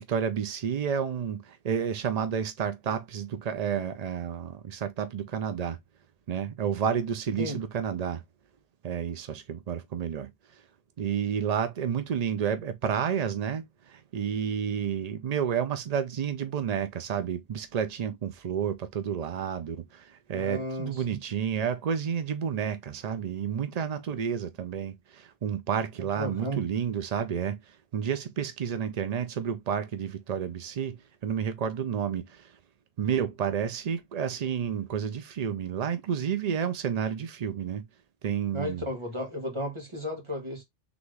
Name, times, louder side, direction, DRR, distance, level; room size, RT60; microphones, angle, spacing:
voice 1, 0.0-5.8 6.3-8.2 8.8-10.3 11.0-32.5 33.0-37.8 38.2-38.8, right 8 dB, 65° right, 0.4 m, -30 dB
voice 2, 20.3-21.2 26.2-26.6 38.5-40.6, equal, 25° right, 1.8 m, -34 dB
4.0 x 3.5 x 3.2 m
omnidirectional pair, 1.3 m